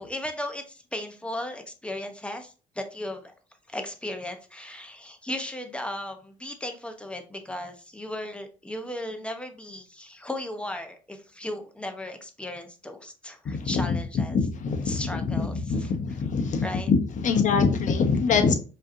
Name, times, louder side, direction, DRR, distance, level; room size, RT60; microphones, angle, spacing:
voice 1, 0.0-3.3 3.7-14.4 14.9-15.5 15.8-15.9 16.6-16.9, left 1 dB, 5° left, 0.8 m, -36 dB
voice 2, 13.4-18.5, left 5 dB, 50° left, 0.8 m, -24 dB
5.1 x 2.8 x 2.6 m
cardioid pair, 110°, 17 cm